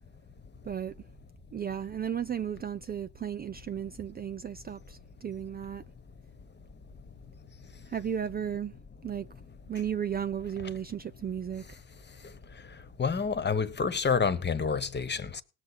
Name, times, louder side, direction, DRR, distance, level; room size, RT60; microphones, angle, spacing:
voice 1, 0.6-1.0 1.5-5.8 7.9-8.7 9.0-9.3 9.7-11.8, right 8 dB, 25° right, 0.5 m, -34 dB
voice 2, 13.0-15.4, left 5 dB, 25° left, 1.3 m, -28 dB
19.0 x 7.0 x 4.1 m
supercardioid pair, 75°, 38 cm